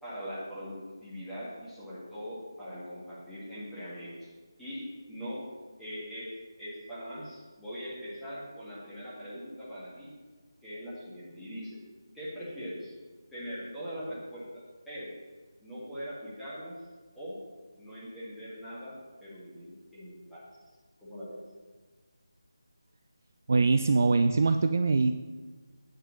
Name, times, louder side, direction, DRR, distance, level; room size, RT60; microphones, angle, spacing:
voice 1, 0.0-4.3 4.6-5.4 5.8-6.3 6.6-10.1 10.6-11.8 12.1-12.9 13.3-15.1 15.6-16.8 17.1-17.4 17.8-20.4 21.0-21.4, equal, ahead, -12 dB, 1.9 m, -41 dB
voice 2, 23.5-25.1, right 3 dB, 40° right, 8 dB, 0.3 m, -23 dB
8.9 x 4.9 x 7.1 m, 1.4 s
figure-of-eight pair, 160°, 2 cm